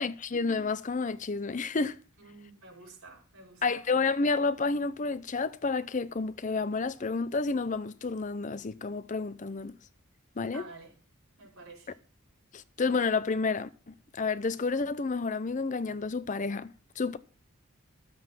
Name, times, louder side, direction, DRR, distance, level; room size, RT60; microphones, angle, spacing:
voice 1, 0.0-2.0 3.6-9.8 10.4-10.6 12.5-17.2, left 4 dB, 35° left, 0.5 m, -30 dB
voice 2, 2.2-3.9 10.5-10.9 11.4-11.9, right 3 dB, 65° right, 5.6 m, -50 dB
12.5 x 7.7 x 5.9 m
head